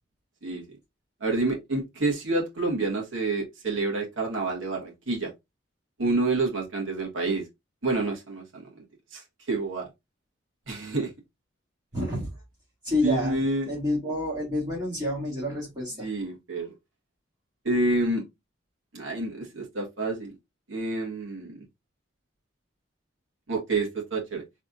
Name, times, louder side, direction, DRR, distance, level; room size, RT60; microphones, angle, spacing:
voice 1, 1.2-5.3 6.0-7.4 7.8-8.6 9.1-9.9 10.7-11.1 13.0-13.7 16.0-16.7 17.6-18.2 18.9-20.3 20.7-21.6 23.5-24.4, right 2 dB, 80° right, 1.5 m, -28 dB
voice 2, 11.9-12.3 12.8-13.4 13.7-16.1, left 1 dB, 20° right, 2.0 m, -28 dB
4.0 x 3.4 x 2.3 m
head